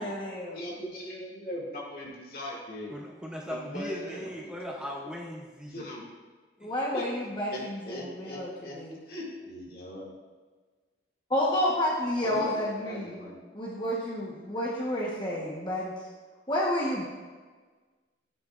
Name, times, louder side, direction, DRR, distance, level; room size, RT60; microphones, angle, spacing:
voice 1, 0.0-0.6 6.6-8.5 8.7-9.0 11.3-13.3 13.5-15.9 16.5-17.0, left 1 dB, 25° left, -4 dB, 1.1 m, -30 dB
voice 2, 0.5-2.9 3.4-4.9 5.7-6.0 6.9-7.0 7.5-8.8 9.1-10.1 12.2-13.4, equal, 50° left, -3 dB, 2.3 m, -40 dB
voice 3, 2.9-5.9 6.6-6.7, equal, 5° right, -2 dB, 0.7 m, -39 dB
13.0 x 9.5 x 2.5 m, 1.4 s
head